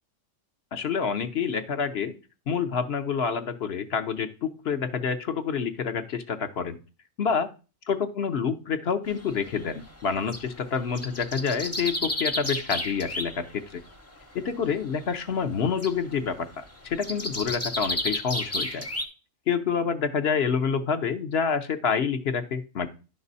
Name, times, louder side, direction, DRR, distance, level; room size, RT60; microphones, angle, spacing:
voice 1, 0.7-2.1 2.5-6.8 7.2-7.5 7.9-13.5 13.7-13.8 14.3-18.9 19.5-22.9, left 6 dB, 50° left, 8 dB, 0.9 m, -28 dB
sound 1, 9.1-10.5 10.8-13.5 13.7-14.2 14.8-15.3 15.6-19.0, left 1 dB, 15° left, 0.6 m, -32 dB
11.0 x 6.0 x 4.1 m, 0.34 s
omnidirectional pair, 1.5 m